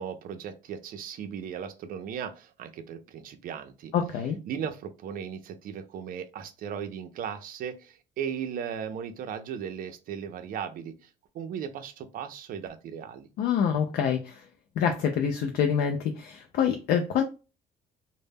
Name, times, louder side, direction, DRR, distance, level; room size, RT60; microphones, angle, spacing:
voice 1, 0.0-3.9 4.5-11.1 11.3-13.3, right 8 dB, 55° right, 0.5 m, -37 dB
voice 2, 3.9-4.4 13.4-14.5 14.8-17.2, left 7 dB, 65° left, 0.4 m, -26 dB
2.1 x 2.0 x 3.3 m
cardioid pair, 110°, 17 cm